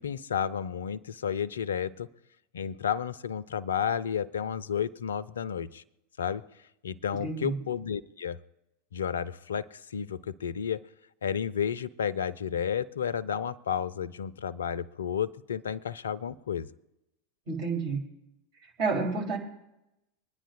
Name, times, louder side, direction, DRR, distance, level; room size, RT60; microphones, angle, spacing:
voice 1, 0.0-2.1 2.5-5.8 6.2-6.4 6.8-8.4 8.9-10.8 11.2-16.7, left 8 dB, 70° left, 19 dB, 0.5 m, -32 dB
voice 2, 7.2-7.5 17.5-18.0 18.8-19.4, right 4 dB, 50° right, 0 dB, 3.6 m, -29 dB
24.0 x 10.0 x 2.6 m, 0.90 s
figure-of-eight pair, 85°, 0 cm